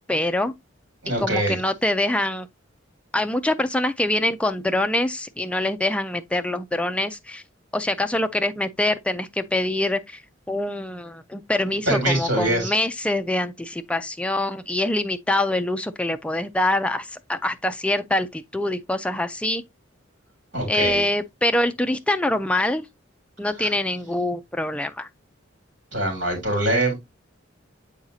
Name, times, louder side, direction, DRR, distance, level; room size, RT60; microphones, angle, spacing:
voice 1, 0.1-0.5 1.2-2.5 3.1-7.4 7.7-10.2 10.5-19.6 20.7-22.8 23.4-25.1, left 1 dB, 5° left, 0.4 m, -24 dB
voice 2, 1.0-1.6 11.9-12.7 20.5-21.0 23.6-23.7 25.9-26.9, right 1 dB, 60° right, 3.3 m, -23 dB
7.3 x 4.8 x 2.7 m
head